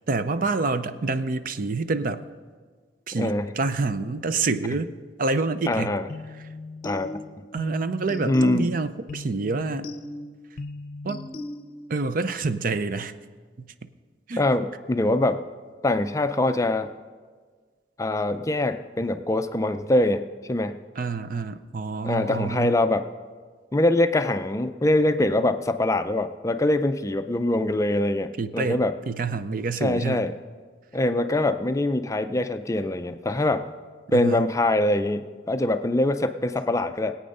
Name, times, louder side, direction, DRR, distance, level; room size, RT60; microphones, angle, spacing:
voice 1, 0.1-2.2 3.1-4.9 5.2-6.0 7.5-9.9 11.0-11.2 11.9-13.1 14.3-14.5 21.0-22.8 28.4-30.3 34.1-34.5, right 3 dB, 50° right, 12 dB, 0.5 m, -27 dB
voice 2, 3.1-3.5 5.7-6.1 6.8-7.1 8.2-8.7 14.4-15.4 15.8-16.9 18.0-20.8 22.0-23.0 23.7-28.9 29.8-30.3 30.9-33.7 34.1-37.2, left 1 dB, 15° left, 9 dB, 0.4 m, -23 dB
sound 1, 6.1-12.1, left 2 dB, 50° left, 0.7 m, -38 dB
18.5 x 8.6 x 5.4 m, 1.5 s
head